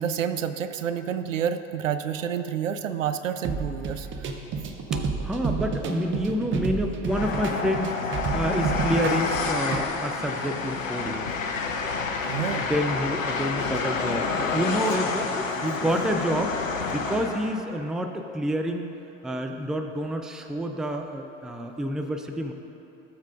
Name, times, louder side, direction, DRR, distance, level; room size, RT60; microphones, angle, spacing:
voice 1, 0.0-4.3 12.3-12.7, right 8 dB, 85° right, 11 dB, 0.5 m, -29 dB
sound 1, 3.4-9.8, right 4 dB, 30° right, 0.8 m, -30 dB
voice 2, 4.9-8.0 8.3-11.3 12.6-16.6 16.9-18.9 19.2-22.5, equal, ahead, 5 dB, 0.3 m, -28 dB
Train, 7.1-17.6, left 4 dB, 85° left, 0.8 m, -29 dB
15.5 x 7.3 x 2.6 m, 2.9 s
figure-of-eight pair, 75°, 38 cm